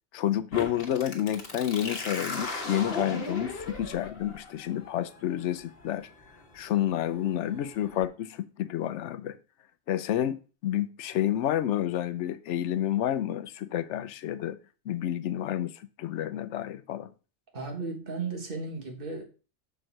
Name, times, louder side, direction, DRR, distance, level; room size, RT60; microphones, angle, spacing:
voice 1, 0.1-6.1 6.5-9.4 9.9-14.6 14.9-17.1, left 11 dB, 80° left, 0.9 m, -30 dB
sound 1, 0.5-8.0, left 3 dB, 55° left, 1.3 m, -38 dB
voice 2, 17.5-19.2, right 4 dB, 50° right, 1.6 m, -35 dB
6.4 x 4.6 x 4.5 m
omnidirectional pair, 1.2 m